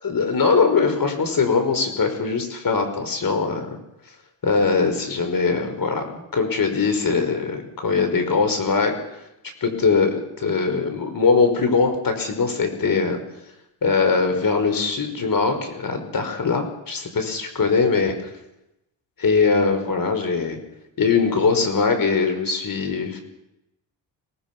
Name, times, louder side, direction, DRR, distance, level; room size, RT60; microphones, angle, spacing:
voice 1, 0.0-3.8 4.4-9.0 9.6-13.2 13.8-18.1 19.2-20.6 21.0-23.2, left 4 dB, 45° left, 6 dB, 5.2 m, -21 dB
25.5 x 18.5 x 6.1 m, 0.89 s
cardioid pair, 90°, 48 cm